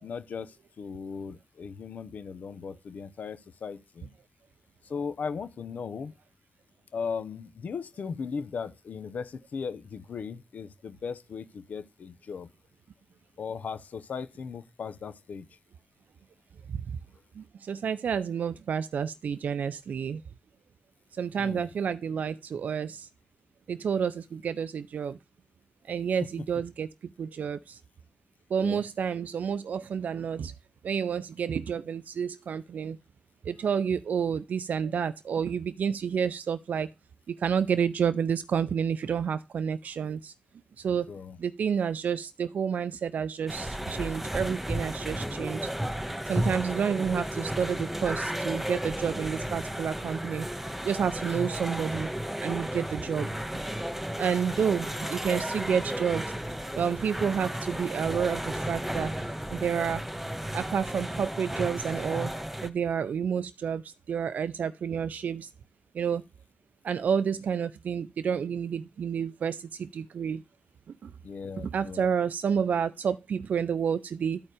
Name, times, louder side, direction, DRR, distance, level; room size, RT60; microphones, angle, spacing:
voice 1, 0.0-4.1 4.8-6.1 6.9-12.5 13.4-15.5 21.4-21.7 26.2-26.3 28.6-28.8 41.1-41.4 54.5-54.8 71.2-72.0, left 5 dB, 85° left, 0.7 m, -37 dB
voice 2, 17.4-20.2 21.2-23.1 23.7-25.2 25.9-26.9 27.2-27.8 28.5-30.5 30.8-33.0 33.5-36.9 37.3-40.3 40.8-41.1 41.4-45.7 46.3-50.5 50.8-52.1 52.4-53.3 54.2-56.3 56.7-59.1 59.5-60.0 60.5-62.3 62.6-65.5 65.9-66.2 66.8-70.4 71.0-71.1 71.6-74.4, right 7 dB, 85° right, 0.4 m, -29 dB
sound 1, 43.5-62.7, equal, 10° right, 1.5 m, -33 dB
12.0 x 4.4 x 4.8 m
cardioid pair, 40°, 3 cm